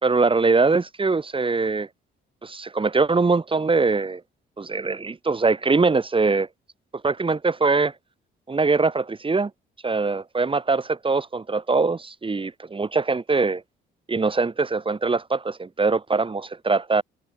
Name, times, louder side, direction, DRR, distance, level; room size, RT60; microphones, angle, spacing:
voice 1, 0.0-1.9 2.4-4.2 4.6-6.5 7.0-7.9 8.5-9.5 9.8-13.6 14.1-17.0, right 4 dB, 25° right, 4.0 m, -22 dB
cardioid pair, 90°, 20 cm